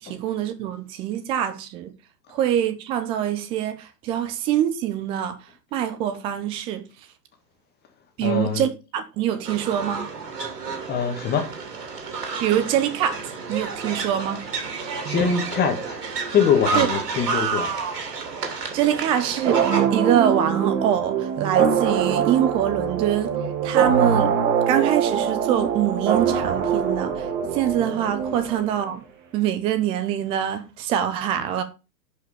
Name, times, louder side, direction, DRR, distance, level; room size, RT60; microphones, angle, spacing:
voice 1, 0.0-1.9 2.3-5.4 5.7-6.9 8.2-10.1 12.4-13.2 13.5-14.5 15.0-15.3 16.7-16.9 18.7-23.3 23.6-24.4 24.7-29.1 29.3-31.6, right 10 dB, 10° right, 0.5 m, -24 dB
voice 2, 8.2-8.7 10.9-11.5 15.1-16.0 16.3-17.7 28.4-28.5, left 6 dB, 20° left, 1.8 m, -23 dB
sound 1, 9.4-19.9, right 4 dB, 65° right, 3.1 m, -30 dB
sound 2, 19.4-28.9, right 7 dB, 50° right, 2.6 m, -23 dB
11.0 x 5.2 x 5.1 m
figure-of-eight pair, 110°, 50 cm